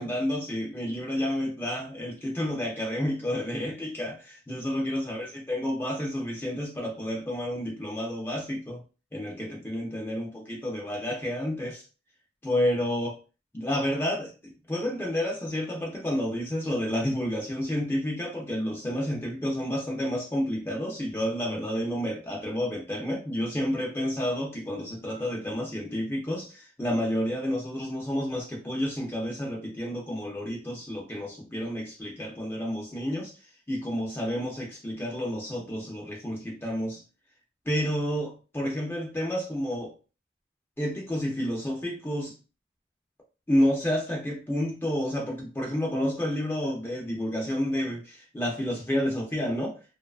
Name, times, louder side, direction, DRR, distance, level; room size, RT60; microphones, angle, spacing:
voice 1, 0.0-8.8 9.1-11.8 12.4-13.2 13.5-33.3 33.7-37.0 37.7-39.9 40.8-42.3 43.5-49.8, equal, 15° left, 0.5 m, -30 dB
2.7 x 2.2 x 2.4 m
head